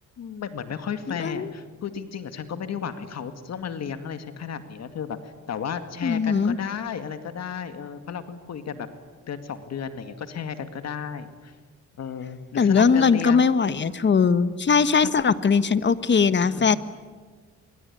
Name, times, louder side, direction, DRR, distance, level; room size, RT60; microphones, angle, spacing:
voice 1, 0.2-8.9 9.3-11.5 12.0-13.5 15.0-15.1 16.4-16.8, left 7 dB, 60° left, 9 dB, 2.2 m, -34 dB
voice 2, 1.1-1.5 6.0-6.6 12.6-16.8, left 5 dB, 35° left, 13 dB, 1.4 m, -20 dB
26.0 x 23.0 x 10.0 m, 1.5 s
cardioid pair, 90°, 30 cm